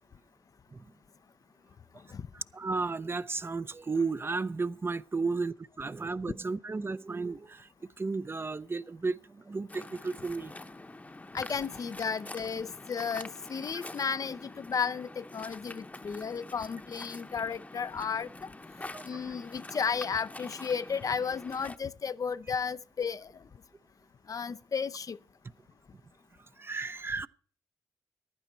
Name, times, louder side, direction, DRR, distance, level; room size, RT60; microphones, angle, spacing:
voice 1, 2.3-7.7 8.0-10.5 18.8-19.4 26.6-27.3, right 4 dB, 30° right, 0.5 m, -34 dB
Waves surf, 9.7-21.8, left 2 dB, 20° left, 0.9 m, -46 dB
voice 2, 11.3-18.5 19.0-23.3 24.3-25.2, left 6 dB, 50° left, 0.5 m, -33 dB
15.0 x 11.0 x 4.4 m
cardioid pair, 55°, 8 cm